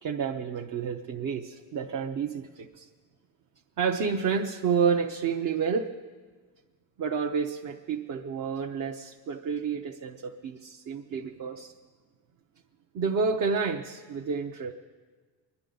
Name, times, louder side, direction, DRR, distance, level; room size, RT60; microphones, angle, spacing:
voice 1, 0.0-2.9 3.8-5.9 7.0-11.7 12.9-14.7, right 6 dB, 45° right, 3 dB, 0.8 m, -30 dB
25.0 x 11.0 x 3.9 m, 1.4 s
cardioid pair, 115°, 44 cm